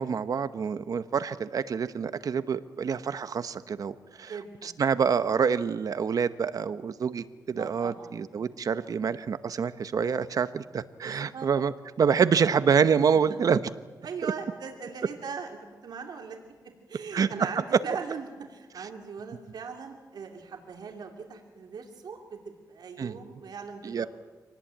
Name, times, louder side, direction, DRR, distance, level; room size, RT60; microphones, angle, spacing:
voice 1, 0.0-4.3 4.6-13.6 17.1-17.3 17.7-17.8 23.0-23.2 23.8-24.1, right 6 dB, 60° right, 13 dB, 0.9 m, -26 dB
voice 2, 4.2-4.8 7.6-8.1 11.0-11.5 13.1-13.4 14.0-16.4 16.9-24.1, right 5 dB, 80° right, 3 dB, 2.6 m, -40 dB
26.0 x 19.0 x 8.9 m, 1.3 s
wide cardioid pair, 160°, 7 cm